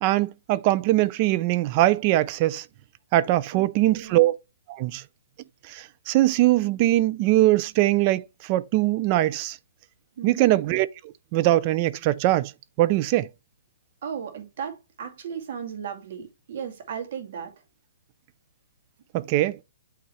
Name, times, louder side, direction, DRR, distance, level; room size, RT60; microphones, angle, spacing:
voice 1, 0.0-2.6 3.1-4.4 4.7-5.0 5.7-9.6 10.2-10.9 11.3-12.5 12.8-13.3 19.1-19.6, right 16 dB, 30° right, 0.5 m, -21 dB
voice 2, 10.2-10.5 14.0-17.5, right 7 dB, 55° right, 2.3 m, -35 dB
8.7 x 3.7 x 3.2 m
hypercardioid pair, 155°, 0 cm